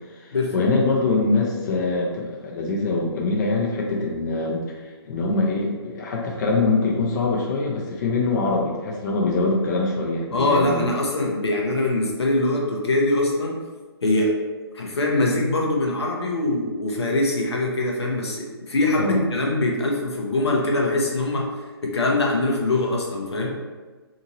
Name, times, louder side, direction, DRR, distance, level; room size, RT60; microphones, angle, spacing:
voice 1, 0.1-10.9 19.0-19.2, left 3 dB, 45° left, -2 dB, 0.6 m, -23 dB
voice 2, 10.3-13.6 14.0-14.4 14.7-21.5 21.8-23.6, left 2 dB, 80° left, -1 dB, 0.7 m, -23 dB
2.7 x 2.6 x 2.8 m, 1.3 s
hypercardioid pair, 140°, 14 cm